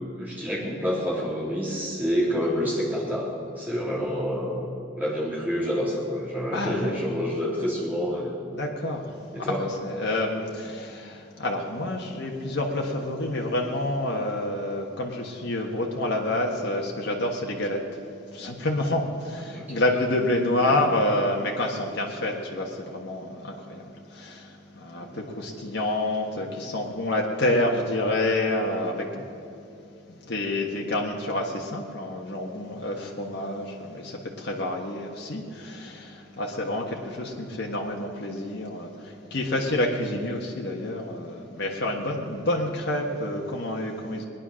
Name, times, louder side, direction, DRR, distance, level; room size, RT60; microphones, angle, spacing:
voice 1, 0.2-3.3 3.5-4.7 5.0-8.4 9.3-9.7 19.5-19.8 20.6-20.8 25.1-25.2, equal, 10° right, -5 dB, 3.3 m, -28 dB
voice 2, 6.5-6.9 8.5-9.1 9.8-17.8 18.3-23.9 24.1-24.5 24.8-29.2 30.3-44.3, left 1 dB, 55° left, -1 dB, 1.5 m, -28 dB
20.0 x 10.5 x 6.3 m, 2.5 s
head